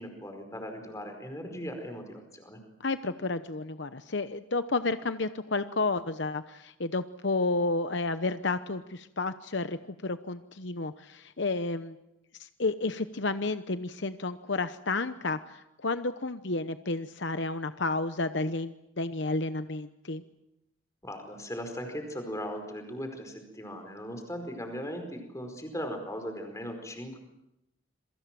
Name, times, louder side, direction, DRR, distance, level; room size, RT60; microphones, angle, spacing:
voice 1, 0.0-2.6 21.0-27.2, equal, 15° left, 5 dB, 4.8 m, -38 dB
voice 2, 2.8-12.0 12.4-20.2, left 3 dB, 60° left, 11 dB, 0.9 m, -31 dB
27.5 x 23.5 x 7.6 m, 0.86 s
head